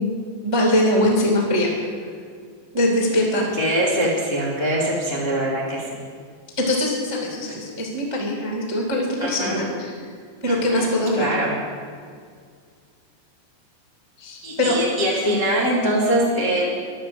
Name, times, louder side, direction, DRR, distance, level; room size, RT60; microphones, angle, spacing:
voice 1, 0.0-1.7 2.7-3.5 6.6-9.9 10.4-11.3 14.2-14.8, left 1 dB, 20° right, -1 dB, 0.7 m, -22 dB
voice 2, 3.3-6.0 9.2-9.6 10.5-11.5 14.4-16.7, right 1 dB, 55° left, -5 dB, 0.8 m, -23 dB
11.5 x 9.5 x 7.9 m, 2.1 s
omnidirectional pair, 5.1 m